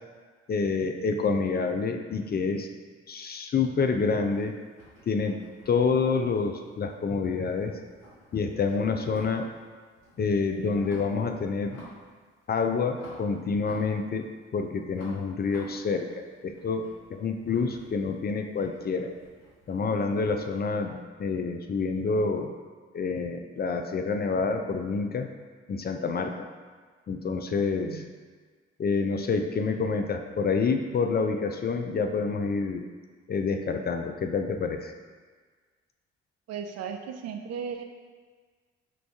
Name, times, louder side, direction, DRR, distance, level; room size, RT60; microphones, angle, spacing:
voice 1, 0.5-2.7 3.1-4.6 5.1-5.4 5.7-7.7 8.3-9.5 10.2-11.8 12.5-14.2 14.5-16.8 17.1-19.1 19.7-22.5 22.9-25.3 25.7-26.3 27.1-28.0 28.8-32.8 33.3-34.9, left 4 dB, 35° left, 5 dB, 0.4 m, -27 dB
sound 1, 4.2-7.0 7.3-9.6 9.9-11.2 11.6-12.1 12.4-14.5 14.9-20.6, left 1 dB, 90° left, 1.2 m, -51 dB
voice 2, 36.5-37.8, right 7 dB, 55° right, 5 dB, 0.5 m, -36 dB
4.6 x 2.5 x 3.5 m, 1.5 s
hypercardioid pair, 45°, 30 cm